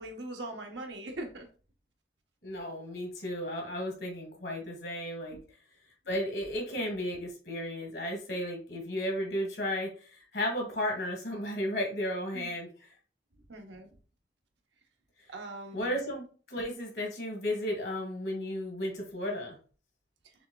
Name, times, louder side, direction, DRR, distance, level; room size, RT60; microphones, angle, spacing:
voice 1, 0.0-1.5 5.3-5.4 12.3-12.5 13.5-13.9 15.3-16.0, right 1 dB, 85° right, 3 dB, 1.0 m, -41 dB
voice 2, 2.4-5.4 6.1-12.7 15.7-19.6, left 1 dB, 65° left, 2 dB, 1.6 m, -34 dB
6.1 x 3.4 x 2.3 m, 0.39 s
head